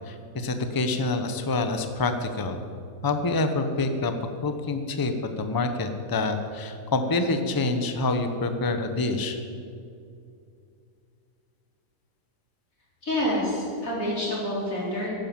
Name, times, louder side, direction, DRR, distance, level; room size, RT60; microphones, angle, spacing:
voice 1, 0.1-2.6 3.0-4.1 4.4-9.4, left 3 dB, 20° left, 7 dB, 0.7 m, -27 dB
voice 2, 13.0-15.1, left 1 dB, 70° left, -6 dB, 4.7 m, -27 dB
11.5 x 10.5 x 7.4 m, 2.4 s
omnidirectional pair, 1.5 m